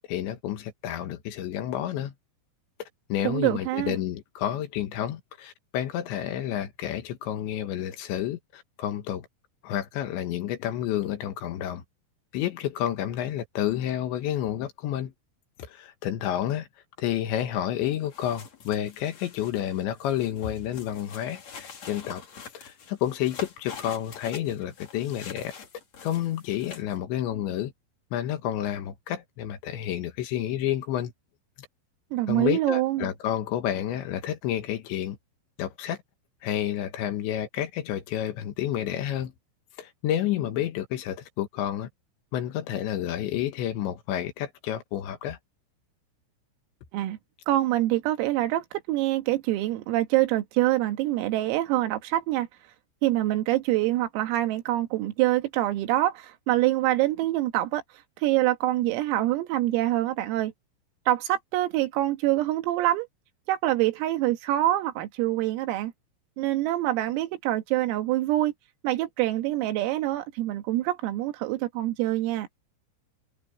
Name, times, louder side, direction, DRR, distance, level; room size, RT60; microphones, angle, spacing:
voice 1, 0.1-2.1 3.1-9.3 9.6-11.8 12.3-15.1 15.7-16.7 17.0-22.2 22.5-25.5 26.0-27.7 28.1-31.1 32.3-35.2 35.6-36.0 36.4-39.3 39.8-41.9 42.3-45.4, left 11 dB, 70° left, 3.4 m, -30 dB
voice 2, 3.2-4.0 32.1-33.1 46.9-47.2 47.5-52.5 53.0-57.8 58.2-60.5 61.1-63.1 63.5-65.9 66.4-68.5 68.8-72.5, right 15 dB, 85° right, 4.2 m, -25 dB
sound 1, 17.9-26.9, left 6 dB, 40° left, 3.1 m, -45 dB
omnidirectional pair, 5.9 m